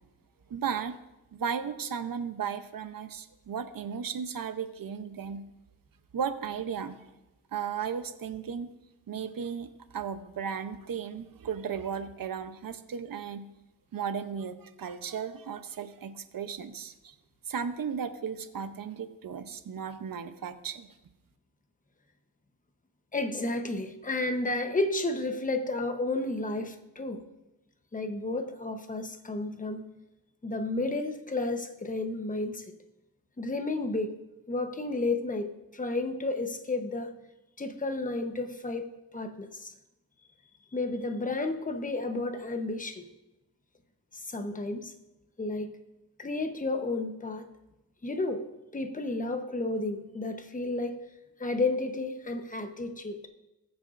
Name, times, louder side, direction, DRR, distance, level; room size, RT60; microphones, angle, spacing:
voice 1, 0.5-1.0 1.3-5.4 6.1-7.0 7.5-8.7 9.1-9.7 9.9-13.4 13.9-17.1 17.5-20.9, right 7 dB, 65° right, 10 dB, 0.8 m, -35 dB
voice 2, 23.1-27.2 27.9-29.8 30.4-32.6 33.4-34.2 34.5-37.1 37.6-39.7 40.7-43.0 44.1-44.9 45.4-45.7 46.2-47.5 48.0-48.4 48.7-51.0 51.4-53.3, left 2 dB, 20° left, 6 dB, 1.0 m, -32 dB
20.0 x 7.0 x 2.6 m, 0.96 s
wide cardioid pair, 85°, 37 cm